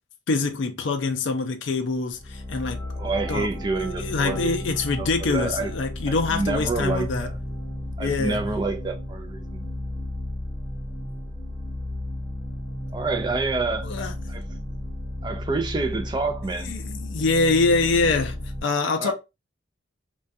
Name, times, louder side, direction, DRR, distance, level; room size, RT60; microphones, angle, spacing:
voice 1, 0.3-2.8 3.3-3.5 3.8-7.3 8.0-8.4 13.8-14.1 16.6-19.1, left 3 dB, 70° left, 0.4 m, -25 dB
sound 1, 2.1-18.6, left 1 dB, 25° left, 0.6 m, -33 dB
voice 2, 3.0-4.6 5.0-5.7 6.1-7.3 8.0-9.7 12.9-13.9 14.3-14.4 15.2-16.7 19.0-19.1, right 3 dB, 20° right, 0.3 m, -28 dB
2.3 x 2.2 x 2.6 m
head